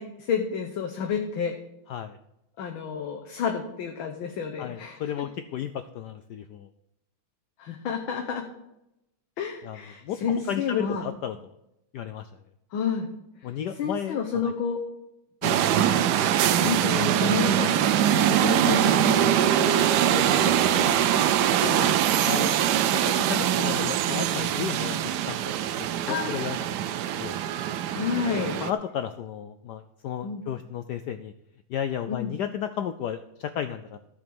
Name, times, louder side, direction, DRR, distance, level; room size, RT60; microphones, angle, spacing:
voice 1, 0.0-1.6 2.6-5.3 7.6-8.5 9.4-11.1 12.7-13.1 13.4-14.8 15.4-21.0 21.6-22.0 26.1-26.3 27.9-28.6 30.2-30.5 32.1-32.4, left 6 dB, 70° left, 3 dB, 1.7 m, -31 dB
voice 2, 4.6-6.7 9.6-9.8 10.0-10.2 10.5-11.4 11.9-12.3 13.4-14.2 16.6-16.7 22.3-25.4 25.8-26.6 27.1-27.4 28.6-31.3 31.7-34.0, left 9 dB, 90° left, 10 dB, 0.9 m, -33 dB
sound 1, 15.4-28.7, right 10 dB, 75° right, 0.9 m, -23 dB
14.0 x 5.1 x 6.9 m, 0.86 s
omnidirectional pair, 2.4 m